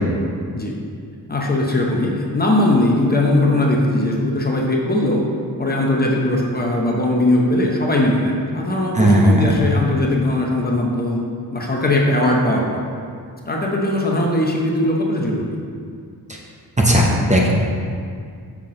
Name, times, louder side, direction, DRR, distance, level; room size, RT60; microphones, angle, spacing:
voice 1, 1.3-5.3 5.6-11.2 11.5-12.8 13.5-15.6, left 1 dB, 25° left, -1 dB, 0.7 m, -19 dB
voice 2, 8.9-9.5 16.8-17.6, equal, 20° right, -2 dB, 0.7 m, -15 dB
5.9 x 5.8 x 3.7 m, 2.2 s
wide cardioid pair, 135°, 39 cm